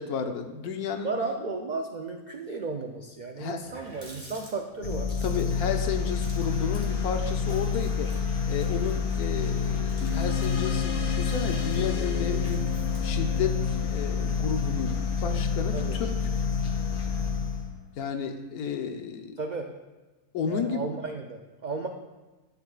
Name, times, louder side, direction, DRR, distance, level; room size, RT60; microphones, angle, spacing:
voice 1, 0.0-1.1 3.4-3.6 5.2-8.1 8.5-12.7 13.0-13.6 13.8-14.9 15.2-16.1 18.0-19.4 20.3-20.9, left 6 dB, 75° left, 6 dB, 1.3 m, -32 dB
voice 2, 1.0-5.1 15.7-16.0 19.4-19.7 20.5-21.9, right 3 dB, 70° right, 3 dB, 0.4 m, -34 dB
Water tap faucet, 3.1-3.2 3.4-13.5, right 1 dB, 25° right, 1.8 m, -52 dB
sound 1, 4.8-17.8, left 5 dB, 40° left, 1.2 m, -28 dB
sound 2, 10.0-14.8, left 5 dB, 55° left, 1.3 m, -35 dB
12.5 x 8.7 x 2.4 m, 1.2 s
omnidirectional pair, 1.6 m